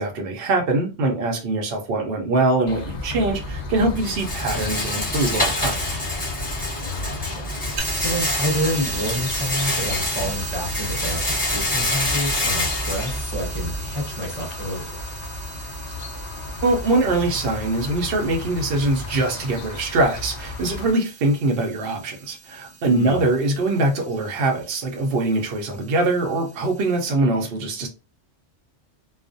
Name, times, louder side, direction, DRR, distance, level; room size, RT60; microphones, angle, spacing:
voice 1, 0.0-5.8 16.6-27.9, right 2 dB, 60° right, 0.7 m, -23 dB
sound 1, 2.7-20.9, left 3 dB, 65° left, 0.4 m, -35 dB
Rattle, 2.9-13.9, left 1 dB, 10° left, 0.8 m, -27 dB
voice 2, 6.8-15.0 22.9-23.3, left 1 dB, 25° right, 0.7 m, -29 dB
sound 2, 7.8-27.1, right 5 dB, 85° right, 1.0 m, -37 dB
2.3 x 2.1 x 2.5 m
omnidirectional pair, 1.3 m